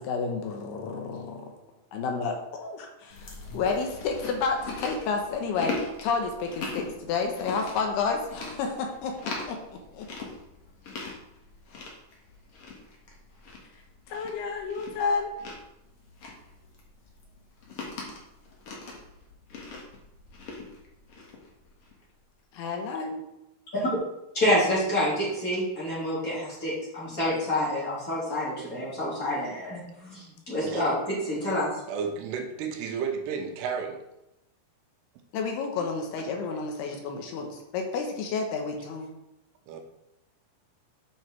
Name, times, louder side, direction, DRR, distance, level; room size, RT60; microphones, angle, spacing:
voice 1, 0.0-1.5 1.9-9.6 9.9-10.1 14.1-15.3 22.5-23.2 35.3-39.1, left 4 dB, 75° left, 2.9 m, -30 dB
Chewing mastication, 3.1-22.0, left 3 dB, 55° left, 1.8 m, -41 dB
voice 2, 24.3-31.7, left 1 dB, 25° left, 3.0 m, -28 dB
voice 3, 31.9-34.0 39.7-39.8, right 6 dB, 85° right, 2.9 m, -32 dB
9.0 x 5.5 x 4.5 m
omnidirectional pair, 4.8 m